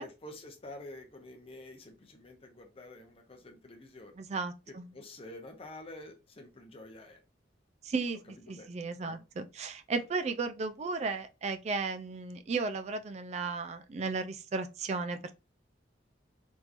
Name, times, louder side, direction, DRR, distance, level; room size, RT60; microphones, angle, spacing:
voice 1, 0.0-4.2 4.7-7.2 8.4-9.2, left 1 dB, 30° left, 0.7 m, -49 dB
voice 2, 4.2-4.9 7.8-15.2, right 4 dB, 35° right, 0.3 m, -35 dB
3.6 x 2.9 x 2.5 m
head